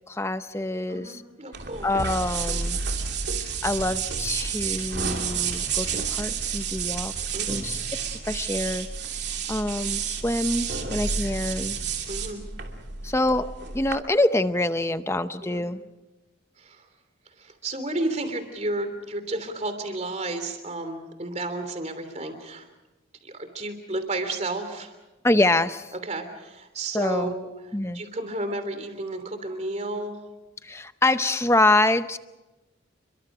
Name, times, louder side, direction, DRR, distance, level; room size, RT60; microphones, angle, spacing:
voice 1, 0.1-1.2 1.8-2.8 3.6-7.1 7.5-7.8 8.2-8.9 9.5-11.8 13.0-15.8 25.2-25.9 26.9-27.3 27.7-28.0 30.6-32.2, left 2 dB, 15° left, 11 dB, 0.7 m, -25 dB
voice 2, 0.9-1.9 7.3-7.6 12.1-12.4 15.4-15.6 16.6-16.9 17.4-22.7 23.2-25.0 26.0-30.2, right 2 dB, 35° right, 8 dB, 3.1 m, -32 dB
sound 1, 1.5-14.0, right 6 dB, 60° right, 2.8 m, -30 dB
30.0 x 23.0 x 5.0 m, 1.1 s
head